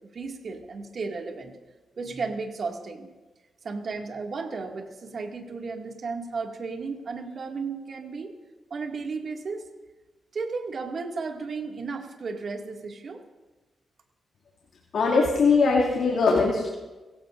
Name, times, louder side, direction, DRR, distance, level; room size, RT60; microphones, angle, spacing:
voice 1, 0.1-1.5 2.0-3.1 3.6-8.3 8.7-9.7 10.3-13.2, right 4 dB, 55° right, 2 dB, 2.1 m, -34 dB
voice 2, 14.9-16.7, left 4 dB, 75° left, -2 dB, 2.3 m, -21 dB
23.0 x 16.5 x 2.6 m, 1.2 s
cardioid pair, 95°, 0 cm